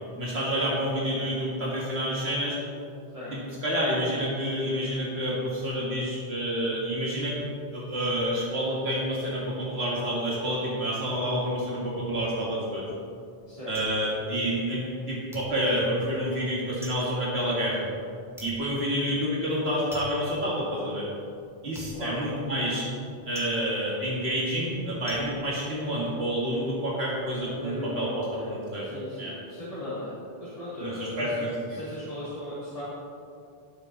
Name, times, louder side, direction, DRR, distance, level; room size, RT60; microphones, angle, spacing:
voice 1, 0.2-2.6 3.3-7.4 7.7-12.8 13.7-17.9 18.4-21.1 21.6-22.9 23.3-28.9 29.2-29.3 30.8-31.5, equal, 75° right, -5 dB, 2.2 m, -28 dB
sound 1, 13.7-15.0 15.3-26.4 26.8-27.4, right 1 dB, ahead, 1.8 m, -46 dB
voice 2, 21.9-22.3 25.7-26.0 27.5-28.4 28.8-30.1 30.4-32.8, left 1 dB, 35° left, -12 dB, 2.8 m, -37 dB
17.0 x 6.9 x 4.0 m, 2.5 s
omnidirectional pair, 1.1 m